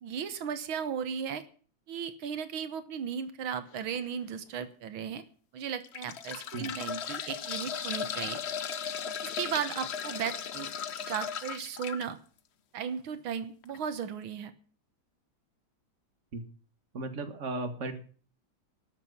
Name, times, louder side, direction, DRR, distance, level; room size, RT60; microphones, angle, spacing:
voice 1, 0.0-1.4 1.9-5.2 5.5-8.4 9.2-10.7 11.1-12.2 12.7-14.5, right 7 dB, 90° right, 11 dB, 2.0 m, -35 dB
sound 1, 3.7-4.0 4.6-4.7 5.6-12.0 13.6-13.8 14.0-14.1, left 7 dB, 60° left, 0.7 m, -37 dB
voice 2, 16.9-17.9, right 2 dB, 40° right, 7 dB, 2.0 m, -35 dB
12.5 x 7.5 x 9.6 m, 0.42 s
omnidirectional pair, 2.2 m